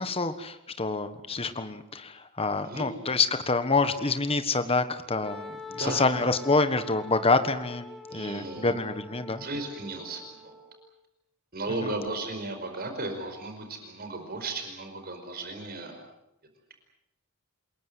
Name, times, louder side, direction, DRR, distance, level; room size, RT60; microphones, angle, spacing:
voice 1, 0.0-7.8 8.1-9.4 11.8-11.9, left 3 dB, 25° left, 10 dB, 1.4 m, -27 dB
voice 2, 2.6-2.9 5.7-6.0 8.1-8.7 9.4-10.5 11.5-16.0, right 2 dB, 45° right, 5 dB, 5.0 m, -35 dB
Wind instrument woodwind instrument, 5.2-10.9, left 1 dB, ahead, 3.4 m, -44 dB
28.0 x 21.5 x 7.9 m, 0.83 s
head